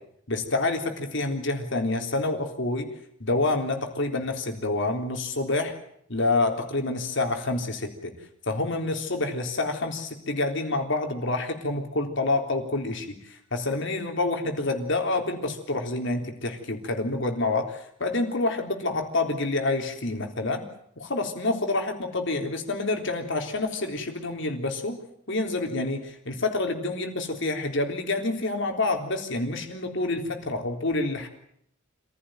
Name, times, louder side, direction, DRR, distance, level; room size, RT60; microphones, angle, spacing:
voice 1, 0.3-2.9 3.2-5.7 6.1-8.1 8.5-20.6 21.0-25.0 25.3-31.3, left 2 dB, 60° left, 4 dB, 3.7 m, -28 dB
27.0 x 16.0 x 9.2 m, 0.69 s
head